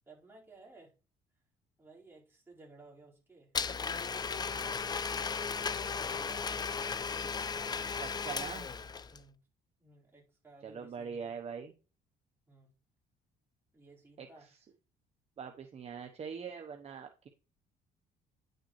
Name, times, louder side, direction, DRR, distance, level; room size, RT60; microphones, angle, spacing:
voice 1, 0.0-0.9 1.8-3.5 4.1-5.2 6.1-6.4 7.2-7.7 9.1-9.4 9.8-11.3 12.5-12.7 13.7-14.5, right 3 dB, 15° right, -5 dB, 4.6 m, -57 dB
Domestic sounds home sounds, 3.5-9.2, left 5 dB, 25° left, 0.4 m, -36 dB
voice 2, 8.0-8.7 10.6-11.7 14.2-14.3 15.4-17.3, right 6 dB, 40° right, 5 dB, 1.0 m, -42 dB
10.5 x 6.7 x 3.2 m, 0.33 s
cardioid pair, 110°, 17 cm